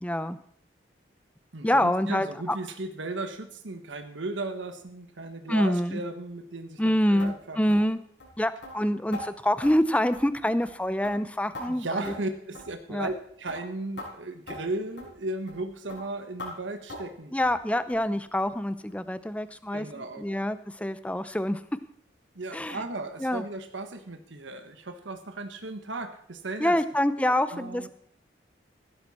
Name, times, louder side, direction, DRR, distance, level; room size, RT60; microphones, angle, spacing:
voice 1, 0.0-0.4 1.6-2.6 5.5-6.0 6.8-8.0 8.4-12.1 12.9-13.1 17.3-21.6 22.5-22.8 23.2-23.4 26.6-27.9, left 1 dB, 5° left, 13 dB, 0.6 m, -26 dB
voice 2, 1.5-7.8 11.6-17.3 17.6-17.8 19.7-20.4 22.3-27.9, right 2 dB, 85° right, 7 dB, 1.3 m, -36 dB
sound 1, 7.2-7.3 7.7-7.9 8.2-8.3 8.6-8.8 9.1-9.3 9.6-9.8 10.1-10.4 10.6-10.8 11.0-11.7 12.0-12.3 12.5-12.7 13.0-13.2 13.5-13.6 14.0-14.1 14.5-14.6 15.0-15.1 15.5-15.6 15.9-16.0 16.4-16.5 16.9-17.1 17.4-17.6 17.9-18.1 18.4-18.5 18.9-19.0 19.4-19.5, left 1 dB, 75° left, 6.7 m, -40 dB
16.0 x 12.5 x 4.3 m, 0.66 s
head